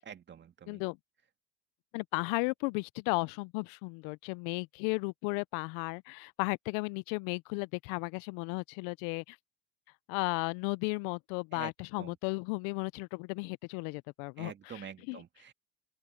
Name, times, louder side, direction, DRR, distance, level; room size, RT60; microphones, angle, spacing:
voice 1, 0.0-0.8 11.5-11.7 12.0-12.2 14.4-15.5, right 7 dB, 35° right, 2.3 m, -46 dB
voice 2, 0.7-1.0 1.9-9.4 10.1-15.2, left 29 dB, 70° left, 0.6 m, -35 dB
open air
hypercardioid pair, 85°, 31 cm